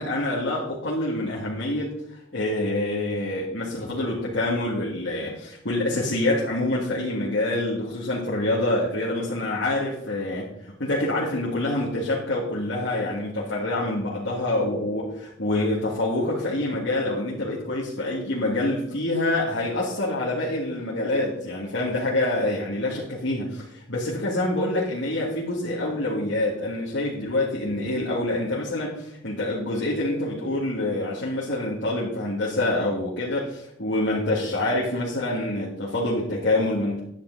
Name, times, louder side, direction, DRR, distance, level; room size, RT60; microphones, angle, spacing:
voice 1, 0.0-1.9 2.3-10.5 10.8-37.0, left 1 dB, 70° left, -6 dB, 2.2 m, -26 dB
10.0 x 8.9 x 4.1 m, 0.74 s
head